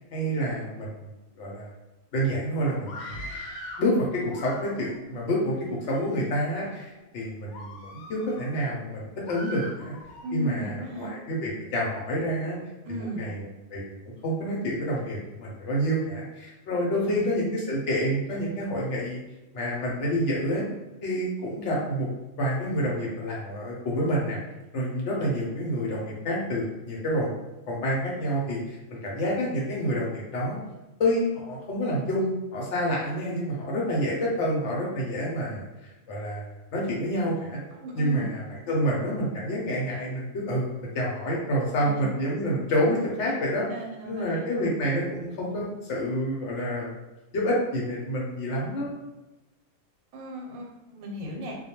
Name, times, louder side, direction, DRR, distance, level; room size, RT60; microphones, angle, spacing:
voice 1, 0.1-0.9 1.4-1.7 2.1-3.0 3.8-6.9 7.1-7.8 8.1-9.9 10.3-12.6 12.9-13.4 13.7-13.8 14.2-19.2 19.5-20.7 21.0-22.1 22.4-24.4 24.7-27.3 27.7-28.8 29.0-30.6 31.0-35.6 36.1-37.6 37.9-43.7 44.0-46.9 47.3-48.9, equal, 65° left, -3 dB, 0.8 m, -28 dB
Screaming, 2.8-3.9 4.3-5.0 5.7-6.3 6.8-7.0 7.5-8.4 9.2-10.3, left 1 dB, 85° left, 1.1 m, -41 dB
voice 2, 10.2-11.1 12.8-13.2 16.9-17.3 37.8-38.3 41.8-42.1 43.7-44.5 50.1-51.5, equal, 85° right, 0 dB, 1.1 m, -35 dB
2.2 x 2.2 x 2.9 m, 1.0 s
omnidirectional pair, 1.5 m